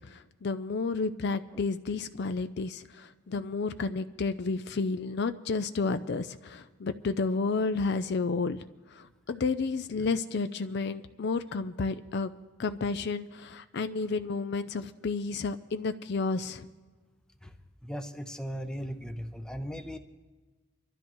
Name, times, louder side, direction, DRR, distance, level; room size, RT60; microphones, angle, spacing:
voice 1, 0.1-8.6 8.9-12.3 12.6-16.7, left 4 dB, 50° left, 11 dB, 0.4 m, -31 dB
voice 2, 17.8-20.0, equal, 5° left, 6 dB, 0.6 m, -37 dB
25.5 x 12.5 x 3.1 m, 1.4 s
head